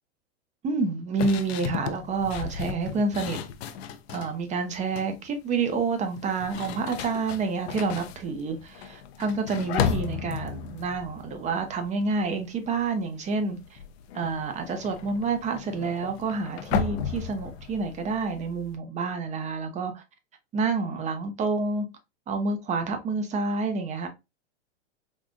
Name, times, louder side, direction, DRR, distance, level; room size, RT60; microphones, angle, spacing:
voice 1, 0.6-3.4 4.1-13.8 14.1-20.0 20.5-21.9 22.3-24.1, right 4 dB, 20° right, 0.6 m, -28 dB
sound 1, 1.2-4.4 4.7-5.2 6.1-12.3 12.6-13.0 13.3-18.8, left 7 dB, 65° left, 0.5 m, -34 dB
3.6 x 2.5 x 2.5 m
hypercardioid pair, 120°, 33 cm